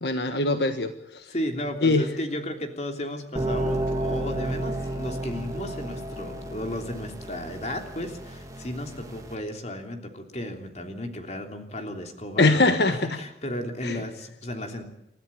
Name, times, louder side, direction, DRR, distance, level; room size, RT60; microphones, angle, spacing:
voice 1, 0.0-1.2 1.8-2.0 12.4-13.1 13.8-14.0, left 2 dB, 75° left, 8 dB, 1.4 m, -22 dB
voice 2, 1.3-14.9, left 1 dB, 40° left, 5 dB, 3.2 m, -34 dB
sound 1, 3.4-9.4, right 1 dB, 20° right, 2.8 m, -32 dB
29.0 x 13.5 x 8.6 m, 0.83 s
head